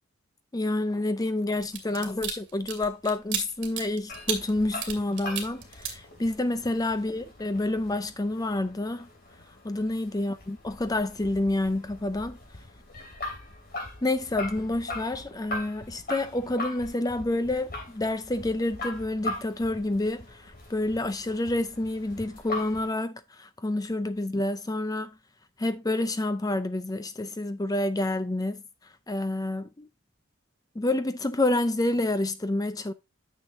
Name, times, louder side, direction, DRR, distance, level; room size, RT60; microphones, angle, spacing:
voice 1, 0.5-9.1 9.6-12.4 14.0-25.1 25.6-28.6 29.1-29.9 30.8-32.9, left 2 dB, 15° left, 0.5 m, -28 dB
sound 1, 1.6-6.6 7.0-7.2, right 7 dB, 60° right, 2.0 m, -34 dB
sound 2, 4.1-22.9, left 2 dB, 45° left, 3.0 m, -41 dB
9.7 x 6.5 x 2.7 m
head